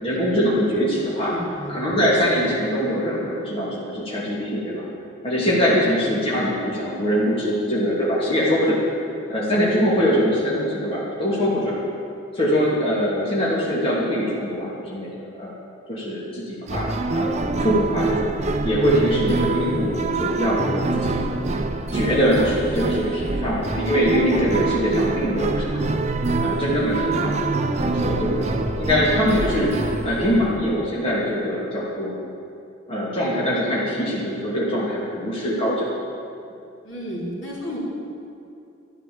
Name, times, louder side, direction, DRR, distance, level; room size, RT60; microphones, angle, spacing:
voice 1, 0.0-1.3 1.7-4.9 5.2-8.8 9.3-11.8 12.3-15.1 15.4-15.6 15.9-17.3 17.6-18.3 18.6-21.1 21.9-25.7 26.4-29.7 30.0-32.2 32.9-35.9, equal, 30° left, -7 dB, 2.7 m, -23 dB
voice 2, 1.2-1.9 5.7-6.3 36.8-37.8, equal, 65° left, -5 dB, 3.8 m, -33 dB
sound 1, 16.7-30.6, right 2 dB, 35° right, 0.7 m, -25 dB
13.0 x 12.0 x 7.2 m, 2.6 s
head